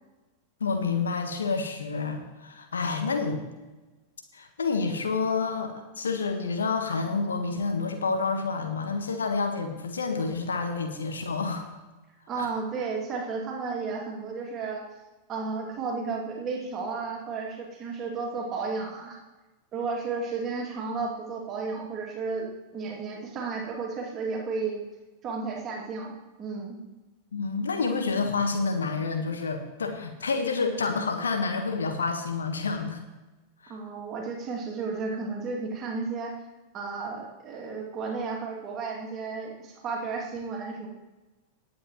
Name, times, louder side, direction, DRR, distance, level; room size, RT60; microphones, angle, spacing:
voice 1, 0.6-3.4 4.3-11.7 12.4-12.5 27.3-33.0 33.6-33.8, left 4 dB, 70° left, 5 dB, 1.4 m, -29 dB
voice 2, 12.3-14.8 15.3-19.2 19.7-22.5 22.7-24.8 25.2-26.8 33.7-36.4 36.7-40.9, right 4 dB, 30° right, -1 dB, 2.5 m, -33 dB
19.5 x 8.6 x 3.1 m, 1.1 s
figure-of-eight pair, 90°, 0 cm